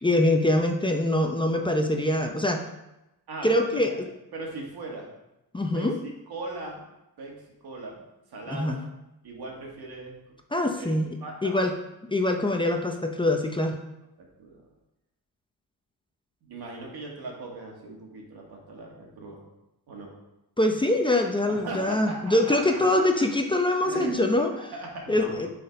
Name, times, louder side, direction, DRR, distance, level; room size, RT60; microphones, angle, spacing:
voice 1, 0.0-2.6 3.4-3.9 5.5-5.9 8.5-8.8 10.5-11.2 11.4-11.7 12.1-13.8 20.6-24.5 25.1-25.5, left 1 dB, 15° left, 3 dB, 0.6 m, -24 dB
voice 2, 3.3-4.0 4.3-5.1 5.7-6.8 7.2-7.3 7.6-8.0 8.3-8.8 9.2-10.2 10.8-11.5 14.4-14.6 16.4-19.4 19.9-20.1 21.5-22.6 23.2-23.3 23.8-24.3 24.5-25.3, right 2 dB, 70° right, -1 dB, 2.0 m, -38 dB
7.7 x 4.3 x 5.3 m, 0.93 s
wide cardioid pair, 125°, 39 cm